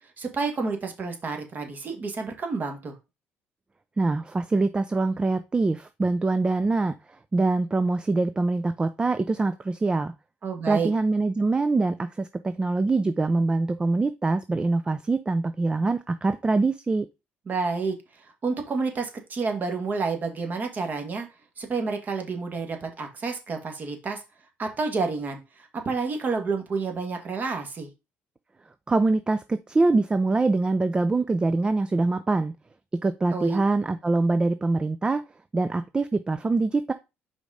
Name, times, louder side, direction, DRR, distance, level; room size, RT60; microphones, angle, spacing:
voice 1, 0.2-3.0 10.4-10.9 17.5-21.3 21.6-24.2 24.6-27.9 33.3-33.6, right 4 dB, 40° right, 4 dB, 1.8 m, -29 dB
voice 2, 4.0-6.9 7.3-10.1 10.7-17.1 28.9-32.5 32.9-35.2 35.5-36.9, right 3 dB, 20° right, 11 dB, 0.5 m, -24 dB
5.1 x 4.1 x 4.9 m, 0.26 s
cardioid pair, 95°, 5 cm